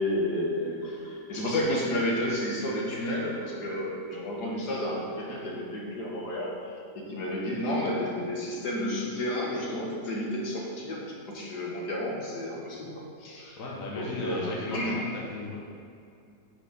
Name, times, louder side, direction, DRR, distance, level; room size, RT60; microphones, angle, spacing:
voice 1, 0.0-12.9 13.2-13.6 13.9-15.0, left 1 dB, 85° left, -3 dB, 2.3 m, -31 dB
voice 2, 13.6-15.6, left 2 dB, 55° left, -4 dB, 1.5 m, -35 dB
8.8 x 6.5 x 5.4 m, 2.5 s
omnidirectional pair, 1.7 m